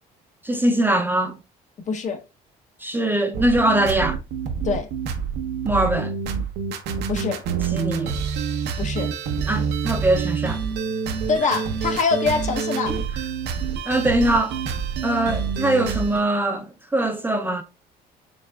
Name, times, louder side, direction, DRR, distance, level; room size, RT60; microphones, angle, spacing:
voice 1, 0.4-1.4 2.8-4.2 5.6-6.1 7.7-8.1 9.5-10.6 13.9-14.6 15.0-17.6, right 1 dB, 10° right, 0.5 m, -22 dB
voice 2, 1.9-2.2 4.6-4.9 7.1-7.4 8.8-9.1 11.3-13.0, left 4 dB, 45° left, 0.9 m, -24 dB
sound 1, 3.3-16.2, right 6 dB, 80° right, 0.8 m, -27 dB
5.2 x 3.4 x 2.3 m
cardioid pair, 110°, 17 cm